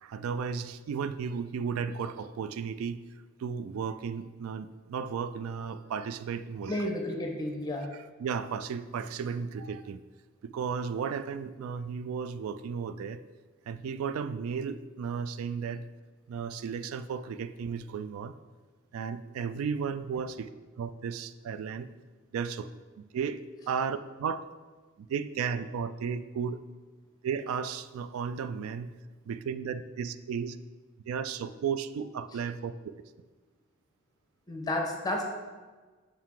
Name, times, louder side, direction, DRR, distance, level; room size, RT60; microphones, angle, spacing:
voice 1, 0.0-3.0 3.4-6.9 7.8-10.0 10.4-13.2 13.7-15.8 16.3-18.3 18.9-21.9 22.3-22.7 23.1-24.4 25.0-26.6 27.2-28.9 29.3-30.6 31.1-32.9, right 6 dB, 90° right, 14 dB, 0.3 m, -34 dB
voice 2, 6.7-7.9 34.5-35.2, left 1 dB, 20° left, 2 dB, 0.8 m, -31 dB
5.7 x 4.6 x 3.7 m, 1.3 s
head